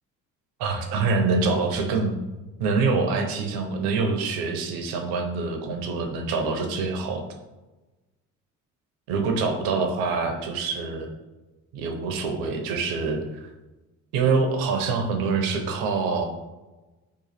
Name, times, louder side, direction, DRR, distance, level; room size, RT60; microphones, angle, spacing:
voice 1, 0.6-2.1 2.6-7.2 9.1-11.1 11.7-13.5 14.1-16.3, right 4 dB, 75° right, 4 dB, 0.7 m, -25 dB
3.0 x 2.4 x 4.1 m, 1.1 s
hypercardioid pair, 60°, 36 cm